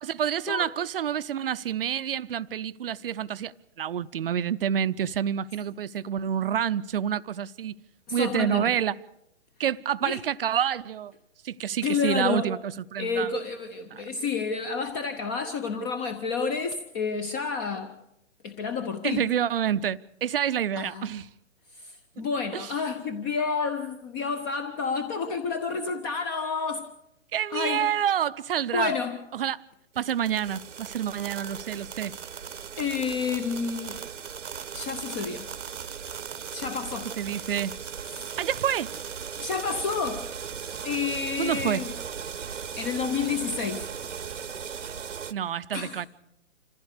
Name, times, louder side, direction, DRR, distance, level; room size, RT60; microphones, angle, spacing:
voice 1, 0.0-7.7 8.1-9.0 9.6-11.1 11.4-13.3 13.9-14.0 19.0-21.3 22.5-22.7 27.3-28.9 29.3-29.6 30.0-32.2 37.2-37.7 38.4-38.9 41.4-41.8 45.3-46.1, right 9 dB, 45° right, 0.6 m, -28 dB
voice 2, 8.1-8.7 10.0-10.2 11.8-12.5 13.0-18.0 18.4-19.2 20.8-21.1 21.7-26.9 27.5-27.9 28.7-29.2 32.8-34.0 34.7-35.5 36.5-37.1 38.1-38.3 39.4-40.3 40.8-41.9 42.8-43.8 45.7-46.0, left 5 dB, 15° left, 0.6 m, -30 dB
sound 1, 30.0-45.3, right 7 dB, 70° right, 1.0 m, -37 dB
26.5 x 15.0 x 6.6 m
figure-of-eight pair, 130°, 39 cm